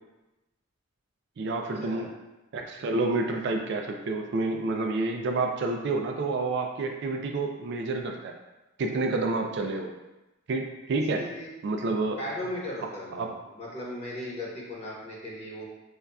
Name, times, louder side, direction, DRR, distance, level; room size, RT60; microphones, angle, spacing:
voice 1, 1.4-2.1 2.5-8.3 8.8-9.9 10.5-11.2 11.6-12.2 13.2-13.3, right 3 dB, 55° right, 3 dB, 0.4 m, -29 dB
voice 2, 12.2-13.3 13.6-15.6, left 1 dB, 30° left, -5 dB, 0.9 m, -37 dB
5.3 x 2.3 x 2.2 m, 1.0 s
head